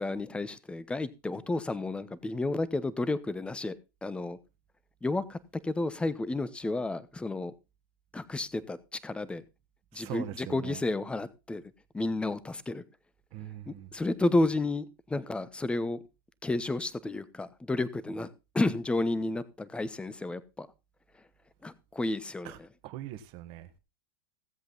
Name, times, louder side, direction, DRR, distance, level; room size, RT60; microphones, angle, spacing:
voice 1, 0.0-3.7 4.0-4.4 5.0-5.4 5.6-7.5 8.1-9.4 9.9-11.6 11.9-12.8 13.7-16.0 16.4-20.7 21.6-22.5, left 2 dB, 10° left, 0.9 m, -31 dB
voice 2, 9.9-10.8 13.3-13.9 22.4-22.6 22.8-23.8, right 13 dB, 50° right, 1.5 m, -42 dB
16.5 x 7.9 x 4.0 m
hypercardioid pair, 115°, 12 cm